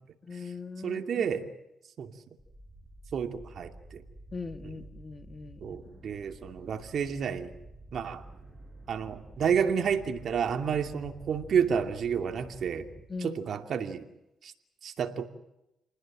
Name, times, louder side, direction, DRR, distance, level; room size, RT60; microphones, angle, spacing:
voice 1, 0.2-1.3 4.3-5.8 13.1-13.4, left 4 dB, 30° left, 9 dB, 2.0 m, -40 dB
voice 2, 0.8-1.5 2.0-2.1 3.1-4.0 5.6-7.5 7.9-8.2 8.9-12.9 13.2-14.0 14.4-14.5 14.8-15.3, right 7 dB, 60° right, 5 dB, 2.7 m, -30 dB
sound 1, 2.4-13.0, right 1 dB, 5° right, 7.6 m, -50 dB
29.0 x 20.0 x 7.5 m, 0.88 s
cardioid pair, 90°, 0 cm